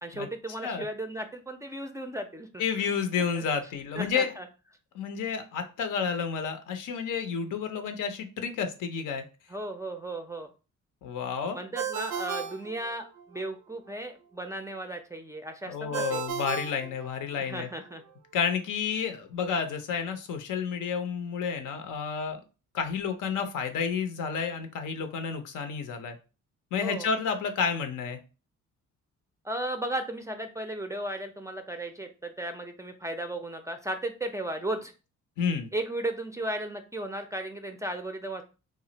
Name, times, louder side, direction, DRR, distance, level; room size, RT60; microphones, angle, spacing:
voice 1, 0.0-2.9 3.3-3.4 3.9-4.5 9.5-10.5 11.5-16.2 17.4-18.0 26.8-27.1 29.4-34.9 35.7-38.4, right 1 dB, 10° right, 6 dB, 0.4 m, -35 dB
voice 2, 2.6-4.3 4.9-9.2 11.0-11.6 15.7-17.7 18.3-22.4 22.7-26.2 26.7-28.2 35.4-35.7, left 6 dB, 80° left, 7 dB, 0.6 m, -30 dB
Ringtone, 11.8-13.4 15.9-17.6, right 7 dB, 90° right, 0.5 m, -35 dB
2.4 x 2.0 x 3.8 m, 0.32 s
cardioid pair, 90°, 31 cm